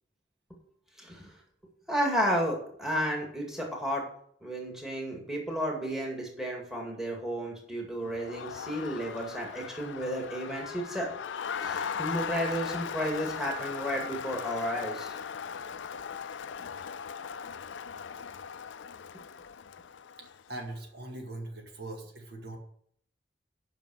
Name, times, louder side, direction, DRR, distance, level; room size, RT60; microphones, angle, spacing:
voice 1, 1.0-1.3 1.9-4.1 4.4-11.1 11.6-15.2, equal, ahead, -1 dB, 2.2 m, -32 dB
Crowd, 8.0-20.6, left 7 dB, 75° left, 0.4 m, -38 dB
voice 2, 20.2-22.6, right 2 dB, 60° right, 1 dB, 2.1 m, -41 dB
9.2 x 5.8 x 7.7 m, 0.64 s
head